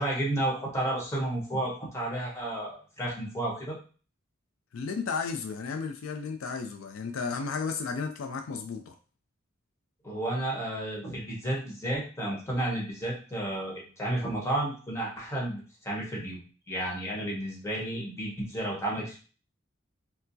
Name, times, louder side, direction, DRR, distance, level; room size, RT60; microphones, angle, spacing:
voice 1, 0.0-3.8 10.0-16.4 16.7-19.2, right 1 dB, 15° left, -3 dB, 1.0 m, -32 dB
voice 2, 4.7-8.9, left 5 dB, 75° left, 6 dB, 0.4 m, -33 dB
4.3 x 2.0 x 2.7 m, 0.38 s
head